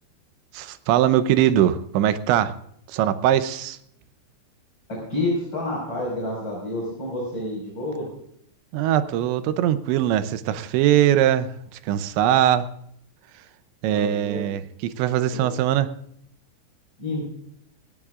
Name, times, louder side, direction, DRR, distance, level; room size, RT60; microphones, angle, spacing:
voice 1, 0.5-2.6 2.9-3.8 8.7-12.7 13.8-15.9, right 11 dB, 80° right, 12 dB, 2.9 m, -21 dB
voice 2, 4.9-8.1 13.9-14.4 15.3-15.5 17.0-17.3, left 1 dB, 25° left, -5 dB, 5.4 m, -29 dB
19.0 x 16.0 x 2.5 m, 0.71 s
omnidirectional pair, 5.4 m